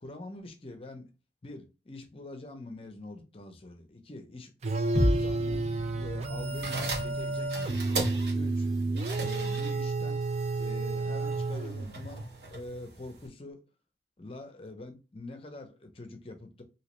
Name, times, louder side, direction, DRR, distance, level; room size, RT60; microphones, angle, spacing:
voice 1, 0.0-1.1 1.4-4.5 5.0-5.7 5.9-7.8 8.3-8.7 9.2-10.2 10.6-12.2 12.5-13.6 14.2-16.6, left 2 dB, 30° left, 0.6 m, -44 dB
sound 1, 4.6-12.1, right 3 dB, 35° right, 0.4 m, -31 dB
sound 2, 5.0-8.9 9.2-9.3, left 1 dB, 10° left, 1.0 m, -33 dB
sound 3, 6.4-13.3, right 2 dB, 70° right, 1.3 m, -39 dB
3.1 x 2.8 x 3.0 m
head